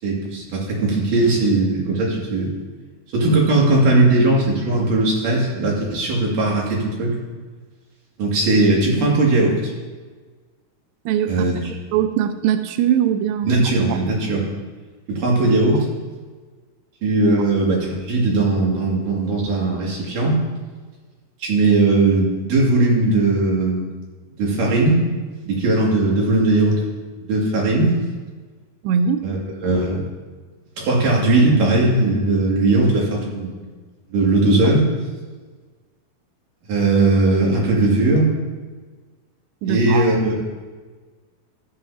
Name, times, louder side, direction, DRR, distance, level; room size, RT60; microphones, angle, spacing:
voice 1, 0.0-2.5 3.1-7.2 8.2-9.7 11.3-11.6 13.4-14.4 15.1-15.9 17.0-20.4 21.4-23.9 24.4-25.0 25.5-26.8 27.3-28.0 29.2-29.4 29.6-30.0 30.8-33.6 34.1-34.9 36.7-38.3 39.7-40.4, right 2 dB, 60° right, -3 dB, 3.8 m, -18 dB
voice 2, 11.1-11.4 11.9-13.6 13.9-14.0 28.8-29.2 39.6-40.2, right 9 dB, 85° right, 9 dB, 2.0 m, -21 dB
14.5 x 11.0 x 2.8 m, 1.4 s
omnidirectional pair, 4.3 m